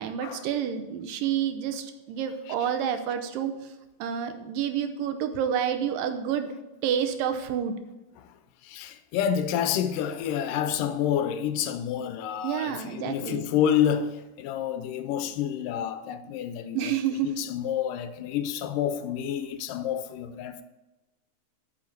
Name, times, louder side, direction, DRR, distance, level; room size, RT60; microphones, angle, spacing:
voice 1, 0.0-3.5 4.0-6.5 6.8-7.8 12.4-13.4 16.7-17.3, right 9 dB, 85° right, 2.5 m, -29 dB
voice 2, 8.6-20.6, left 9 dB, 80° left, 2.2 m, -29 dB
8.7 x 6.1 x 6.4 m
omnidirectional pair, 3.9 m